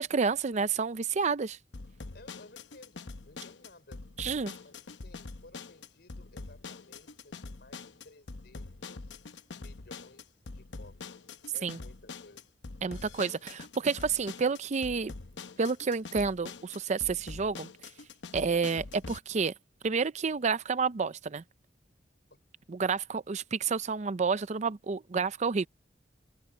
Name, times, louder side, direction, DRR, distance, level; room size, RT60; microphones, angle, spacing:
voice 1, 0.0-1.6 4.2-4.5 11.6-11.8 12.8-15.1 15.6-17.7 18.3-19.5 19.8-21.4 22.7-25.7, right 5 dB, 40° right, 0.5 m, -30 dB
sound 1, 1.7-19.2, left 4 dB, 80° left, 0.8 m, -45 dB
voice 2, 2.1-4.1 4.6-9.2 9.5-12.5 22.3-22.4 22.8-23.0, left 2 dB, 65° left, 5.1 m, -57 dB
head